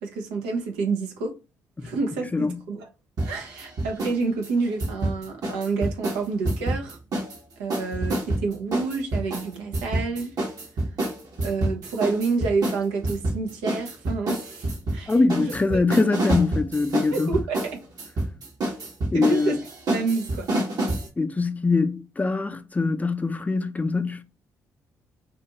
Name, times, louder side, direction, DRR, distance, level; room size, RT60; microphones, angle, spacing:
voice 1, 0.0-1.4 1.8-2.8 3.2-7.0 7.6-10.3 11.4-15.1 15.4-15.8 17.1-17.6 19.1-19.6 19.9-20.5, right 4 dB, 85° right, 0.6 m, -28 dB
sound 1, 3.2-4.2 4.4-7.4 7.7-21.1, right 1 dB, 55° right, 1.0 m, -28 dB
voice 2, 15.1-17.3 19.1-19.6 21.2-24.2, left 3 dB, 20° left, 0.5 m, -23 dB
2.5 x 2.4 x 2.8 m
hypercardioid pair, 50°, 8 cm